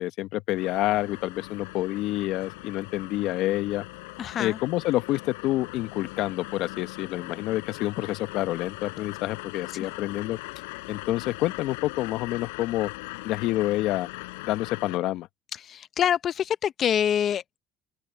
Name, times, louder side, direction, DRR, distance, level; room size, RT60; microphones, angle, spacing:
voice 1, 0.0-3.9 4.4-10.4 10.9-12.9 13.2-14.1 14.4-15.3, left 16 dB, 70° left, 1.2 m, -28 dB
sound 1, 0.5-15.0, left 25 dB, 90° left, 4.6 m, -40 dB
voice 2, 4.2-4.6 9.8-9.9 15.6-17.6, left 9 dB, 50° left, 0.9 m, -26 dB
open air
supercardioid pair, 80°, 0 cm